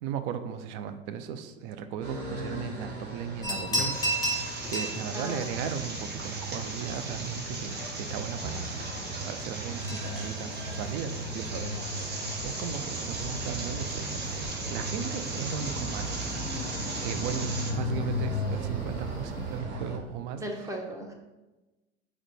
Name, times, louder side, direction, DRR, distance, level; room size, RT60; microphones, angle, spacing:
voice 1, 0.0-4.0 4.7-16.2 17.0-20.4, right 8 dB, 50° right, 10 dB, 0.5 m, -37 dB
sound 1, 2.0-20.0, equal, 75° right, 1.1 m, -36 dB
sound 2, 3.4-19.6, equal, 10° left, 1.3 m, -39 dB
sound 3, 3.9-17.7, right 2 dB, 30° right, 1.0 m, -38 dB
voice 2, 5.1-5.6 20.4-21.1, right 1 dB, 10° right, 2 dB, 0.8 m, -37 dB
4.7 x 2.2 x 4.6 m, 1.1 s
hypercardioid pair, 75°, 32 cm